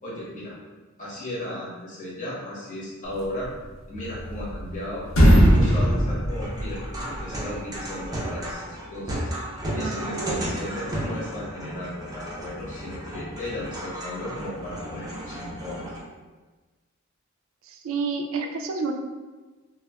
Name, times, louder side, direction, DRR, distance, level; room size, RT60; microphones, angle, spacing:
voice 1, 0.0-0.5 1.0-3.5 3.9-9.2 9.7-15.8, left 1 dB, 40° left, -7 dB, 0.9 m, -35 dB
sound 1, 3.9-4.8 5.0-7.2, equal, 85° left, 0.5 m, -18 dB
sound 2, 5.4-16.0, right 1 dB, 20° right, 0.5 m, -34 dB
voice 2, 9.6-10.4 17.7-18.9, right 4 dB, 80° right, 4 dB, 0.3 m, -30 dB
2.2 x 2.1 x 3.4 m, 1.3 s
head